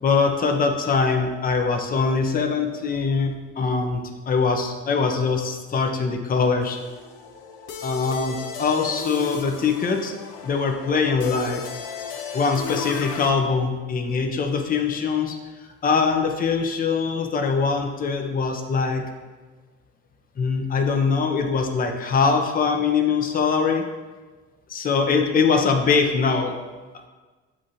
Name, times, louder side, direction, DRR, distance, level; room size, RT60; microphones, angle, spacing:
voice 1, 0.0-6.8 7.8-10.1 10.4-11.6 12.3-15.4 15.8-19.0 20.4-23.8 24.7-26.5, left 5 dB, 25° left, 4 dB, 0.6 m, -22 dB
sound 1, 6.6-13.3, left 6 dB, 65° left, 0.6 m, -35 dB
7.2 x 2.5 x 2.7 m, 1.3 s
hypercardioid pair, 65°, 33 cm